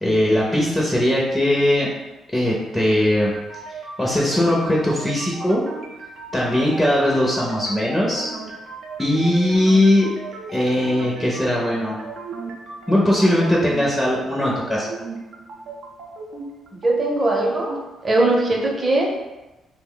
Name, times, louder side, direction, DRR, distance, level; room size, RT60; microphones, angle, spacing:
voice 1, 0.0-1.9 2.3-3.3 4.0-5.6 6.3-8.3 9.0-10.1 10.5-12.0 12.9-14.9, left 1 dB, 10° left, -4 dB, 0.6 m, -19 dB
sound 1, 3.2-19.1, right 3 dB, 75° right, 0.5 m, -36 dB
voice 2, 16.8-17.8 18.0-19.1, right 2 dB, 30° right, -1 dB, 0.7 m, -20 dB
2.6 x 2.1 x 3.7 m, 1.1 s
cardioid pair, 90°, 0 cm